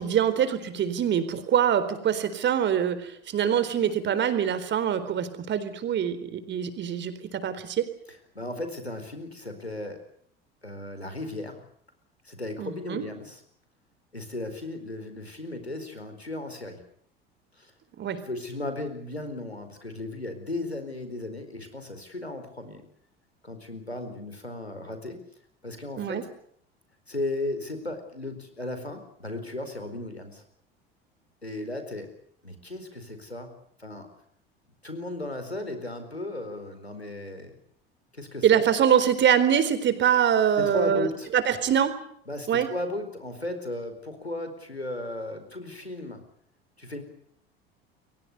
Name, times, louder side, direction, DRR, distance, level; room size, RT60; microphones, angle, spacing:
voice 1, 0.0-7.8 12.6-13.0 18.0-18.2 26.0-26.2 38.4-41.9 42.5-42.7, right 9 dB, 35° right, 12 dB, 4.2 m, -24 dB
voice 2, 8.3-10.0 10.6-11.6 12.2-13.4 14.1-16.8 17.6-17.7 18.2-22.8 23.4-25.2 25.6-26.2 27.1-30.4 31.4-32.1 32.4-34.1 34.8-37.6 38.1-38.6 40.6-41.3 42.3-46.3 46.8-47.0, left 2 dB, 90° left, 8 dB, 4.5 m, -35 dB
29.5 x 23.5 x 6.9 m, 0.64 s
figure-of-eight pair, 70°, 31 cm